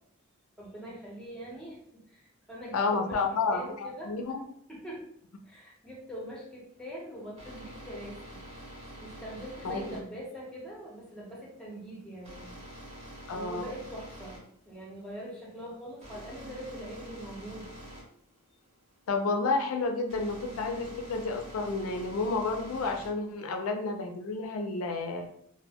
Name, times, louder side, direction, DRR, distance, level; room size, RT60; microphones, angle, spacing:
voice 1, 0.6-4.2 4.7-5.1 5.4-8.4 9.0-12.5 13.3-14.4 14.7-17.7, equal, 5° left, -3 dB, 0.6 m, -43 dB
voice 2, 2.7-4.4 9.6-10.0 13.3-13.6 19.1-25.3, left 3 dB, 80° left, 4 dB, 0.4 m, -30 dB
sound 1, 6.7-23.3, equal, 30° right, 0.9 m, -47 dB
2.1 x 2.1 x 3.4 m, 0.67 s
head